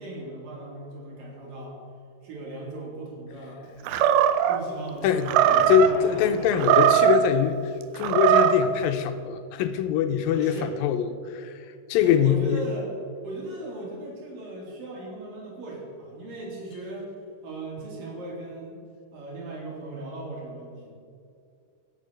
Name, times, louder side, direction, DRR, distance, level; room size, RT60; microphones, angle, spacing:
voice 1, 0.0-1.8 2.2-3.6 4.5-6.9 10.3-10.7 12.0-12.9 13.2-17.1 17.4-18.8 19.1-20.9, right 2 dB, 65° right, -3 dB, 4.7 m, -37 dB
Animal, 3.9-4.6 5.3-5.9 6.5-7.3 8.0-8.7, right 10 dB, 80° right, 2.4 m, -19 dB
sound 1, 5.0-7.3, equal, 20° left, 3.7 m, -41 dB
voice 2, 5.7-12.6, left 9 dB, 80° left, 9 dB, 2.3 m, -23 dB
16.0 x 7.7 x 6.4 m, 2.4 s
omnidirectional pair, 4.4 m